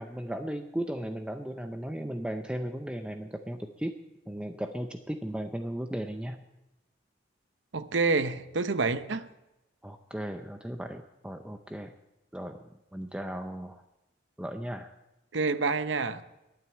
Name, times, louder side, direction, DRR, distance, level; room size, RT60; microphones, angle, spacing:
voice 1, 0.0-3.9 4.3-6.4 9.8-11.9 12.3-12.6 12.9-13.8 14.4-14.9, right 1 dB, 5° right, 6 dB, 0.5 m, -36 dB
voice 2, 7.7-9.3 15.3-16.2, right 4 dB, 65° right, 11 dB, 0.8 m, -28 dB
11.0 x 9.2 x 8.8 m, 0.96 s
head